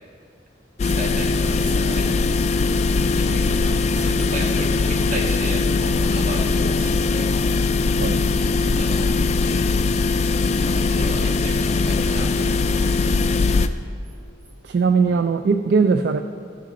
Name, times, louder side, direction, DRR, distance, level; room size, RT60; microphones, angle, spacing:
sound 1, 0.8-13.7, left 3 dB, 35° left, 0.3 m, -20 dB
voice 1, 0.8-2.2 3.1-7.3 8.7-9.1 10.6-13.2 15.1-15.2, right 1 dB, 40° right, -2 dB, 1.8 m, -34 dB
voice 2, 14.6-16.2, right 5 dB, 60° right, 8 dB, 0.3 m, -19 dB
15.5 x 6.2 x 4.2 m, 2.4 s
head